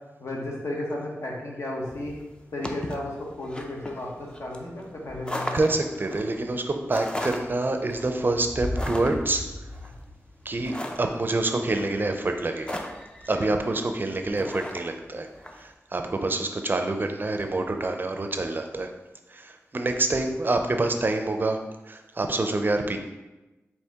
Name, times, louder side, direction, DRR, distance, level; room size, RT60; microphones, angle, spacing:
voice 1, 0.2-2.1 2.5-5.6, left 1 dB, 65° left, -2 dB, 1.1 m, -34 dB
sound 1, 1.9-15.6, left 1 dB, 20° left, 0.4 m, -37 dB
voice 2, 5.5-9.4 10.5-12.8 13.3-15.3 15.5-18.9 19.3-21.6 21.9-23.0, right 2 dB, 40° right, 5 dB, 0.4 m, -27 dB
4.5 x 2.8 x 3.5 m, 1.1 s
wide cardioid pair, 70°, 5 cm